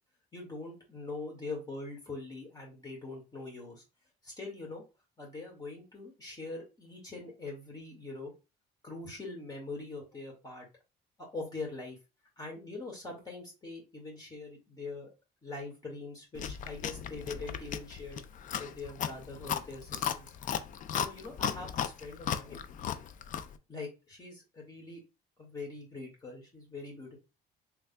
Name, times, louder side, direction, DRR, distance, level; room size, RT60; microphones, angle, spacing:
voice 1, 0.3-3.8 4.2-4.8 5.2-8.3 8.8-10.7 11.2-12.0 12.4-15.1 15.4-18.3 18.6-20.3 21.0-22.6 23.7-25.0 25.4-27.2, left 3 dB, 25° left, -2 dB, 1.8 m, -43 dB
Chewing mastication, 16.4-23.6, left 8 dB, 50° left, 0.4 m, -36 dB
3.5 x 3.3 x 2.2 m, 0.28 s
cardioid pair, 110°, 17 cm